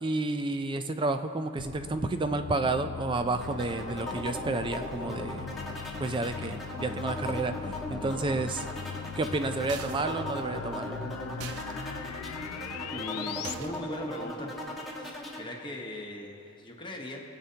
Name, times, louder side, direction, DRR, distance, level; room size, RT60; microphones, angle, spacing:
voice 1, 0.0-5.5 6.0-8.6 9.2-11.0, right 3 dB, 20° right, 9 dB, 0.4 m, -31 dB
sound 1, 1.6-13.6, left 7 dB, 75° left, 0.4 m, -40 dB
sound 2, 3.4-15.4, left 1 dB, ahead, 1.3 m, -38 dB
sound 3, 9.7-10.2 11.4-11.7 13.4-13.9, right 6 dB, 80° right, 0.6 m, -41 dB
voice 2, 12.9-14.5 15.0-17.2, left 1 dB, 20° left, 0 dB, 1.0 m, -39 dB
21.0 x 8.2 x 2.8 m, 2.6 s
head